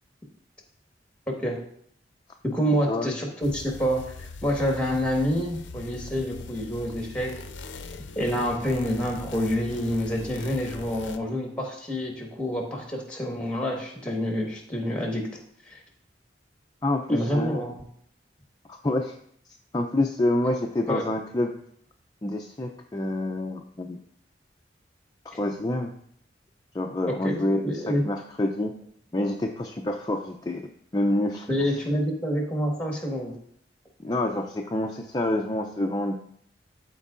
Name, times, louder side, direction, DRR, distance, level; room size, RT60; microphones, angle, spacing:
voice 1, 1.3-1.6 2.4-7.3 7.8-7.9 8.1-15.3 15.7-15.8 17.1-17.8 20.9-21.1 25.3-25.4 27.1-28.0 31.5-33.3, equal, 5° left, 0 dB, 1.4 m, -27 dB
sound 1, 3.4-11.2, left 3 dB, 85° left, 0.5 m, -41 dB
voice 2, 16.8-17.6 18.7-19.1 19.7-21.5 22.2-24.0 25.3-25.9 26.7-28.7 29.1-31.5 34.0-36.1, left 1 dB, 20° left, 2 dB, 0.4 m, -27 dB
13.5 x 4.5 x 2.5 m, 0.66 s
head